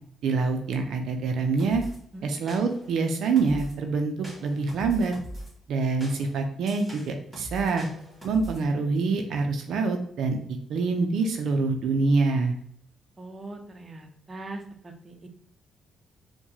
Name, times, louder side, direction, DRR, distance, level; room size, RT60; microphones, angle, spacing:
voice 1, 0.2-1.8 2.2-5.1 5.7-7.9 8.2-10.4 10.7-12.5, right 4 dB, 75° right, 4 dB, 0.5 m, -25 dB
sound 1, 1.6-2.0 2.5-2.9 3.4-3.8 4.2-5.5 6.0-8.6, equal, 10° right, 1.5 m, -41 dB
voice 2, 13.2-15.3, right 2 dB, 30° right, 3 dB, 0.6 m, -41 dB
4.6 x 2.2 x 2.8 m, 0.68 s
cardioid pair, 90°, 0 cm